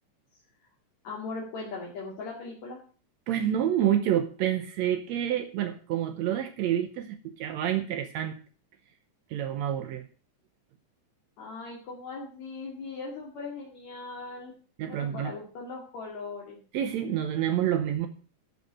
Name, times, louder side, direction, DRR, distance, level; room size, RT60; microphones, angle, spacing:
voice 1, 1.0-2.8 11.4-14.5 14.9-16.6, left 3 dB, 70° left, -3 dB, 3.6 m, -39 dB
voice 2, 3.3-8.4 9.3-10.1 14.8-15.3 16.7-18.1, right 10 dB, 75° right, 7 dB, 2.0 m, -28 dB
12.0 x 5.8 x 7.6 m, 0.40 s
omnidirectional pair, 3.3 m